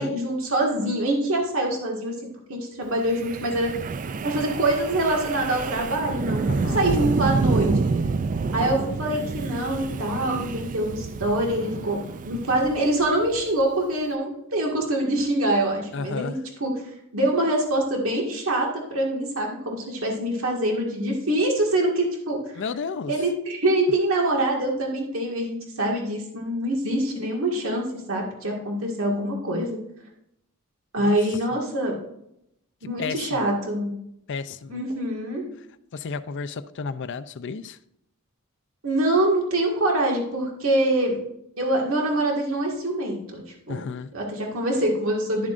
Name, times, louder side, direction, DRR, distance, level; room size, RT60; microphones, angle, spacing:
voice 1, 0.0-2.2 2.5-3.7 4.2-7.7 8.5-22.6 23.1-29.8 30.9-32.0 32.8-34.0 34.7-35.4 38.8-41.2 41.6-43.4 43.7-43.8 44.1-45.5, right 1 dB, 70° right, -1 dB, 1.9 m, -25 dB
Wind, 3.1-13.4, right 4 dB, 40° right, 0.4 m, -28 dB
voice 2, 6.5-6.9 15.9-16.4 22.6-23.1 31.0-31.2 31.5-31.6 33.0-33.5 34.3-34.8 35.9-37.8 43.7-44.1, left 5 dB, 60° left, 12 dB, 0.5 m, -32 dB
12.0 x 7.3 x 2.5 m, 0.77 s
head